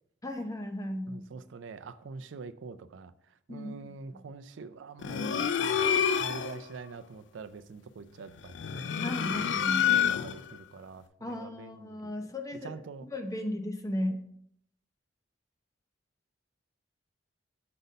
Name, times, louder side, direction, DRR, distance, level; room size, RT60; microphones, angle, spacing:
voice 1, 0.2-1.2 3.5-4.2 9.0-10.0 11.2-14.2, left 1 dB, 15° left, 6 dB, 0.6 m, -36 dB
voice 2, 1.1-3.1 3.5-8.8 9.4-12.2 12.6-13.1, right 4 dB, 75° right, 12 dB, 0.4 m, -45 dB
sound 1, 5.0-6.6 8.5-10.5, left 8 dB, 65° left, 0.3 m, -28 dB
6.6 x 4.0 x 5.2 m, 0.71 s
head